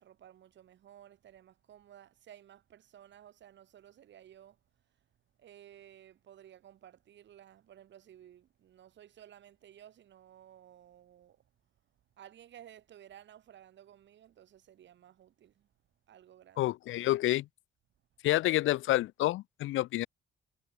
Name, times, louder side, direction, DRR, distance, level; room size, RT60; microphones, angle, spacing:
voice 1, 0.0-4.6 5.4-11.4 12.2-15.7 16.1-16.6, right 11 dB, 65° right, 2.1 m, -56 dB
voice 2, 16.6-17.5 18.2-20.1, left 16 dB, 80° left, 0.7 m, -28 dB
cardioid pair, 90°, 20 cm